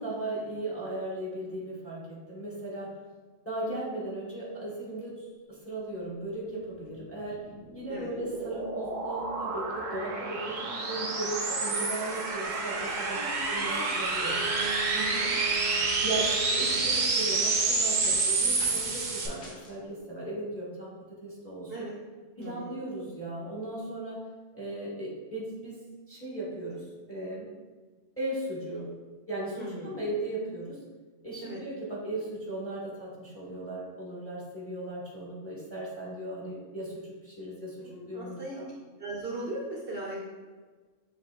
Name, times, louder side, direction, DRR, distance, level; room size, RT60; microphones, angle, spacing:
voice 1, 0.0-2.9 3.4-7.4 7.7-13.2 13.5-13.7 14.0-14.4 14.9-15.3 16.0-21.8 22.4-24.2 24.5-27.5 28.2-28.9 29.3-30.8 31.2-38.7, right 1 dB, 10° left, -6 dB, 0.9 m, -37 dB
sound 1, 7.4-19.3, right 3 dB, 75° right, 1.1 m, -29 dB
voice 2, 13.1-14.7 15.0-15.4 15.8-16.2 21.7-22.0 22.4-22.9 29.6-30.0 31.4-31.6 37.8-38.6 39.0-40.3, right 1 dB, 55° right, -4 dB, 0.8 m, -39 dB
Wind instrument woodwind instrument, 14.3-17.2, right 2 dB, 45° left, 0.6 m, -39 dB
sound 2, 14.6-14.9 16.2-16.6 18.0-18.3 18.6-19.0 19.4-19.7, left 2 dB, 75° left, 1.3 m, -46 dB
6.9 x 3.0 x 2.2 m, 1.4 s
omnidirectional pair, 1.4 m